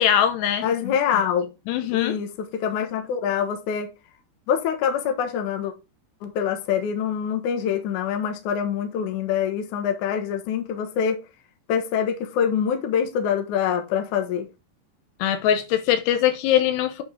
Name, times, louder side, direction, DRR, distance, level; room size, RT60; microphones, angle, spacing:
voice 1, 0.0-1.0 1.7-2.2 15.2-17.0, left 10 dB, 80° left, 3.0 m, -22 dB
voice 2, 0.6-1.5 1.9-3.9 4.5-5.7 6.2-11.2 11.7-14.5, left 8 dB, 65° left, 2.1 m, -25 dB
8.6 x 5.3 x 3.8 m
omnidirectional pair, 4.9 m